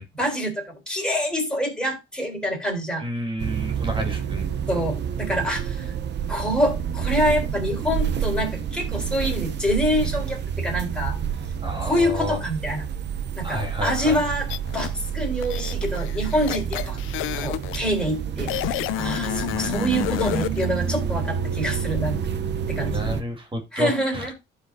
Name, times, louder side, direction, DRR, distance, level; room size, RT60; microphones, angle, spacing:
voice 1, 0.1-3.0 4.7-5.9 6.3-11.2 11.8-12.9 13.3-14.5 14.7-17.0 17.3-22.2 22.7-23.0 23.7-24.3, equal, 5° left, 3.9 m, -26 dB
voice 2, 3.0-4.5 11.6-12.4 13.4-14.2 19.5-19.7 22.8-24.3, equal, 25° right, 2.2 m, -30 dB
sound 1, 3.4-23.2, right 8 dB, 60° right, 0.8 m, -29 dB
sound 2, 14.5-14.9 15.4-17.8 18.5-20.7, left 16 dB, 90° left, 0.4 m, -29 dB
14.5 x 5.0 x 2.7 m
cardioid pair, 90°, 20 cm